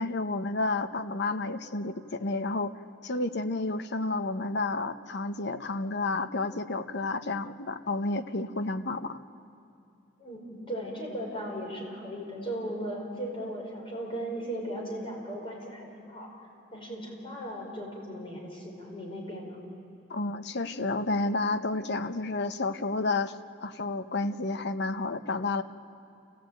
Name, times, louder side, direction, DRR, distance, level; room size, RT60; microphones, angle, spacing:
voice 1, 0.0-2.8 3.0-9.2 20.1-23.4 23.6-25.6, left 3 dB, 60° left, 10 dB, 0.9 m, -30 dB
voice 2, 10.2-16.3 16.7-19.6, right 1 dB, 30° left, -1 dB, 5.2 m, -37 dB
28.5 x 15.5 x 9.0 m, 2.7 s
head